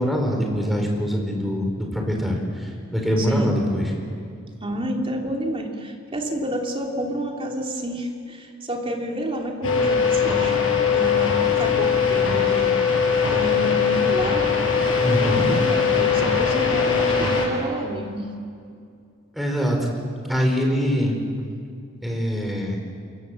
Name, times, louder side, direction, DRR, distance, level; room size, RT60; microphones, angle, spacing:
voice 1, 0.0-3.8 15.0-15.5 19.3-19.9 20.3-21.2 22.0-22.8, equal, ahead, 1 dB, 4.6 m, -23 dB
voice 2, 3.2-3.5 4.6-10.7 10.9-12.7 13.3-14.4 15.2-18.3, right 1 dB, 25° right, 1 dB, 3.1 m, -29 dB
sound 1, 9.6-17.5, left 6 dB, 80° left, 6.0 m, -20 dB
28.0 x 22.5 x 7.7 m, 2.4 s
head